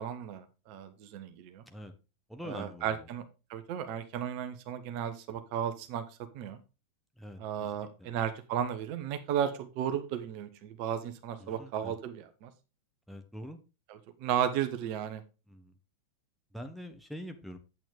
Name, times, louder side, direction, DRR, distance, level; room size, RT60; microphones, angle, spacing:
voice 1, 0.0-1.6 2.5-3.2 3.5-6.0 6.3-6.6 7.4-12.5 14.2-15.2, right 9 dB, 45° right, 9 dB, 1.3 m, -34 dB
voice 2, 2.3-3.1 7.2-8.1 11.4-11.9 13.1-13.6 15.5-15.7 16.5-17.6, equal, ahead, 4 dB, 1.3 m, -44 dB
9.0 x 8.3 x 3.5 m, 0.29 s
figure-of-eight pair, 90°, 0 cm